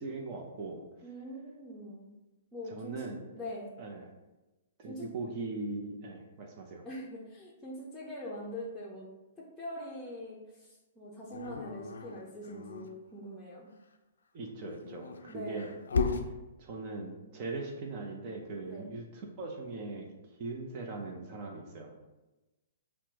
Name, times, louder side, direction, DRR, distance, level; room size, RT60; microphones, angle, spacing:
voice 1, 0.0-0.8 2.7-3.3 3.8-4.1 4.8-6.9 14.3-15.7 16.0-16.2 16.6-20.1 20.3-21.9, right 3 dB, 40° right, 2 dB, 0.7 m, -40 dB
voice 2, 1.0-2.1 2.5-2.9 3.3-3.7 4.8-5.0 6.8-9.1 9.4-13.7 15.3-15.7 18.7-18.9, equal, 5° left, -6 dB, 0.7 m, -43 dB
Dog, 11.3-12.9 14.5-16.3, left 4 dB, 75° left, 0.3 m, -35 dB
5.8 x 2.2 x 2.8 m, 1.1 s
hypercardioid pair, 120°, 0 cm